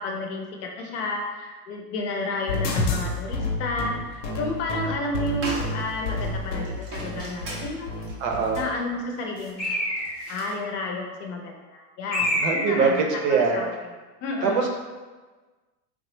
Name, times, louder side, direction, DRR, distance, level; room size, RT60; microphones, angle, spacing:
voice 1, 0.0-4.0 4.4-7.9 8.6-9.7 10.3-13.0 13.3-13.7 14.2-14.7, left 2 dB, 50° left, 1 dB, 0.6 m, -31 dB
sound 1, 2.5-8.6, left 2 dB, 80° left, 0.7 m, -29 dB
sound 2, 4.1-4.5 4.9-5.0 5.3-10.6, right 1 dB, 25° right, 0.4 m, -38 dB
voice 2, 8.2-8.6 12.4-12.9 13.2-13.6 14.4-14.7, right 5 dB, 75° right, 1 dB, 0.8 m, -22 dB
Bird, 9.6-10.4 12.1-13.0, equal, 5° left, 0.8 m, -27 dB
3.4 x 2.0 x 3.0 m, 1.3 s
supercardioid pair, 135°, 48 cm